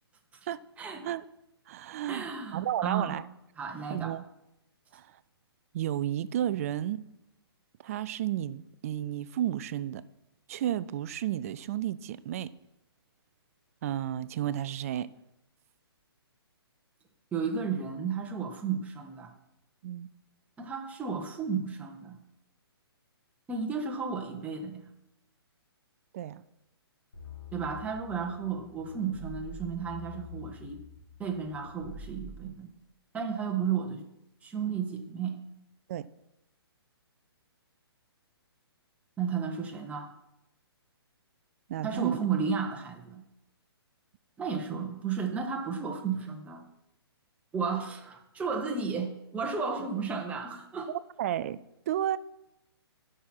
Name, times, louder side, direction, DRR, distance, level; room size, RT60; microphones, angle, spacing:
voice 1, 0.8-1.1 2.1-3.2 3.6-4.2 17.3-19.3 20.6-22.2 23.5-24.9 27.5-30.8 31.2-32.7 33.1-34.0 34.4-35.4 39.2-40.1 41.8-43.2 44.4-46.6 47.5-50.9, right 6 dB, 10° right, 1.1 m, -33 dB
voice 2, 1.7-3.2 3.9-4.2 4.9-5.1 5.7-7.1 7.8-10.0 10.5-12.5 13.8-15.1 19.8-20.1 26.1-26.4 35.9-36.1 41.7-42.2 51.2-51.6 51.9-52.2, right 11 dB, 35° right, 0.4 m, -32 dB
sound 1, 27.1-32.5, left 1 dB, 75° left, 3.6 m, -46 dB
13.5 x 6.1 x 4.4 m
figure-of-eight pair, 135°, 13 cm